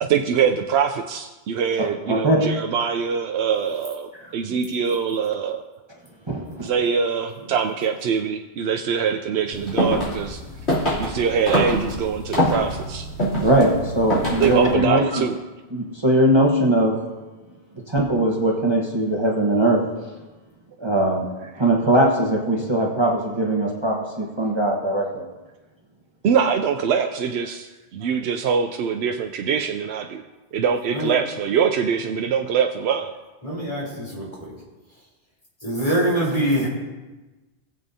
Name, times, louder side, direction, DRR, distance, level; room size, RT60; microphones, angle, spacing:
voice 1, 0.0-5.6 6.6-10.4 11.0-13.1 14.4-15.4 26.2-30.2 30.5-33.1, right 7 dB, 80° right, 4 dB, 0.8 m, -23 dB
voice 2, 2.1-2.4 6.3-6.7 13.4-15.3 15.7-16.9 17.9-19.8 20.8-21.2 21.6-25.2, right 1 dB, 25° right, -2 dB, 1.1 m, -20 dB
sound 1, 9.5-14.7, equal, 85° left, 3.4 m, -25 dB
voice 3, 33.4-34.5 35.6-36.7, right 1 dB, 30° left, -5 dB, 3.6 m, -24 dB
18.5 x 7.9 x 2.7 m, 1.2 s
omnidirectional pair, 1.1 m